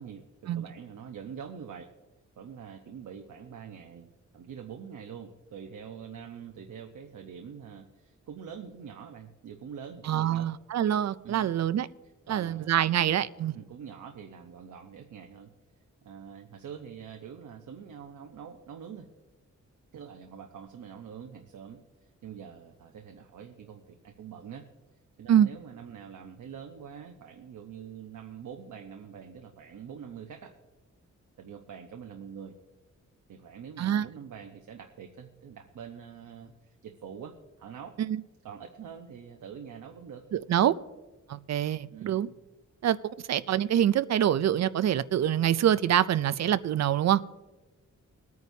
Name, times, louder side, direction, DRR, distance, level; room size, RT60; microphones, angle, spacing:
voice 1, 0.0-1.9 2.4-10.5 11.2-11.5 12.3-13.0 13.5-15.5 16.0-19.1 19.9-24.6 25.2-30.5 31.4-32.6 33.3-38.0 38.4-40.3 41.9-42.3, right 7 dB, 85° right, 0.9 m, -45 dB
voice 2, 10.0-11.9 12.3-13.5 25.3-25.5 33.8-34.0 38.0-38.2 40.3-40.7 41.3-42.3 42.8-43.0 43.3-47.2, right 10 dB, 60° right, 0.4 m, -25 dB
21.5 x 9.4 x 2.7 m
wide cardioid pair, 140°, 30 cm